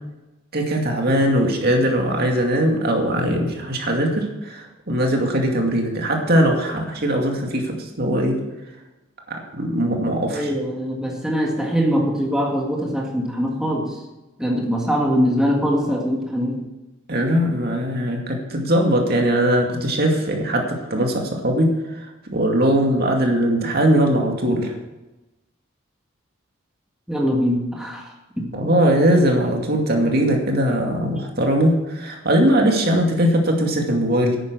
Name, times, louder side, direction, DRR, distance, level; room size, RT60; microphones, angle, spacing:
voice 1, 0.5-8.4 9.3-10.5 17.1-24.7 28.5-34.4, right 1 dB, 50° right, 1 dB, 2.4 m, -20 dB
voice 2, 10.3-14.0 14.4-16.7 27.1-28.5 31.2-31.3, equal, 5° right, -1 dB, 1.8 m, -22 dB
11.0 x 9.3 x 6.3 m, 1.0 s
head